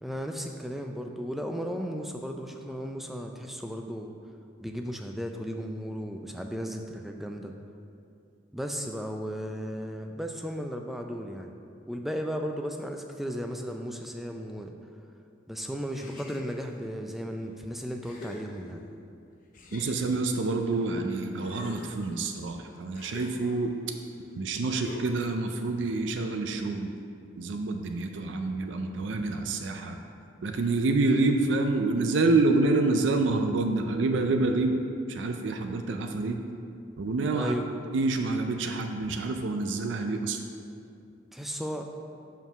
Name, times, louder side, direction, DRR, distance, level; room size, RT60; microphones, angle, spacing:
voice 1, 0.0-4.2 4.6-7.5 8.5-11.5 11.9-14.8 15.5-18.8 37.3-37.7 41.3-41.8, equal, ahead, 3 dB, 0.3 m, -35 dB
sound 1, 15.9-16.8 17.4-17.5 18.0-19.0 19.5-21.0 21.3-23.8 24.8-25.4, left 1 dB, 45° left, 0.7 m, -46 dB
voice 2, 19.7-23.7 24.4-26.9 27.4-30.0 30.4-34.8 35.1-36.4 37.0-37.6 37.9-40.4, right 3 dB, 75° right, 5 dB, 0.4 m, -27 dB
5.5 x 4.6 x 5.9 m, 2.5 s
head